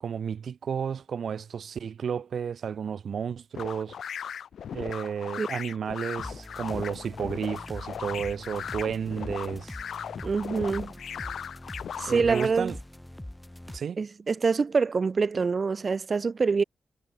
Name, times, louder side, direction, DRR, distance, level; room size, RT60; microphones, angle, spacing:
voice 1, 0.0-4.0 4.7-9.8 12.1-12.8 13.7-14.0, right 7 dB, 70° right, 0.8 m, -32 dB
sound 1, 3.6-12.5, left 8 dB, 80° left, 1.2 m, -38 dB
sound 2, 6.2-13.8, left 1 dB, 10° left, 1.9 m, -42 dB
voice 2, 10.2-10.9 12.0-12.7 14.0-16.6, right 4 dB, 50° right, 0.5 m, -25 dB
cardioid pair, 60°, 0 cm